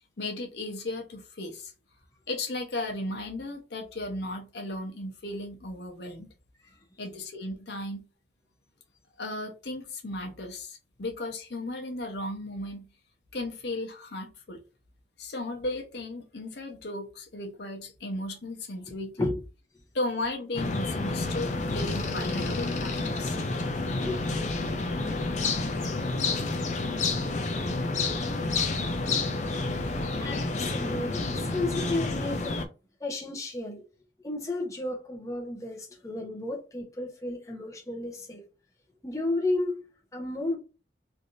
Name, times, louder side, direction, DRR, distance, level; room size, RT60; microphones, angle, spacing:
voice 1, 0.2-1.7 2.3-6.3 7.0-8.1 9.2-12.9 13.3-14.6 15.2-19.3 19.9-23.4, left 2 dB, 65° left, 0.8 m, -35 dB
sound 1, 20.5-32.7, left 3 dB, 40° left, 0.4 m, -29 dB
voice 2, 23.9-24.4 29.9-32.6 33.0-33.8 34.2-38.4 39.0-39.9 40.1-40.6, left 2 dB, 20° left, 0.8 m, -33 dB
3.3 x 2.7 x 2.5 m
head